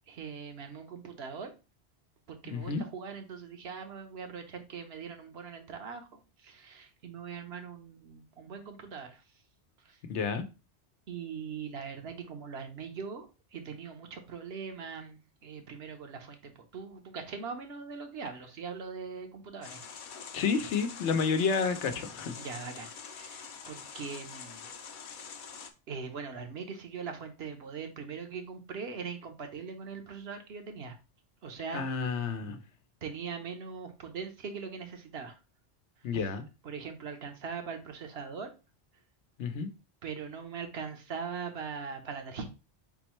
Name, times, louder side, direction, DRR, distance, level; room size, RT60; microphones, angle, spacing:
voice 1, 0.1-1.5 2.3-9.2 9.8-10.0 11.1-19.8 22.4-24.7 25.9-31.0 31.4-32.2 33.0-35.4 36.6-38.5 40.0-42.4, right 5 dB, 65° right, 1.0 m, -41 dB
voice 2, 2.4-2.8 10.1-10.4 20.3-22.4 31.7-32.6 36.0-36.5 39.4-39.7, left 5 dB, 90° left, 1.0 m, -30 dB
sound 1, 19.6-25.7, left 6 dB, 55° left, 0.7 m, -45 dB
4.3 x 3.9 x 3.0 m
omnidirectional pair, 1.2 m